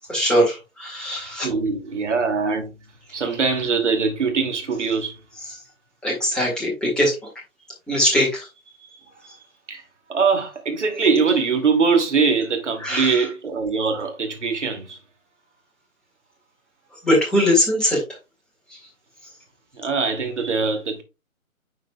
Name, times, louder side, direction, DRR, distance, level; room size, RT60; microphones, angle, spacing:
voice 1, 0.1-1.5 5.4-5.6 6.0-7.2 7.9-8.5 9.2-9.4 12.8-13.3 16.9-18.0 18.7-18.8, equal, ahead, 1.9 m, -21 dB
voice 2, 1.4-2.7 3.1-5.1 9.7-9.8 10.1-15.0 19.7-21.0, right 5 dB, 55° right, 2.4 m, -22 dB
10.0 x 5.1 x 2.2 m
figure-of-eight pair, 140°, 42 cm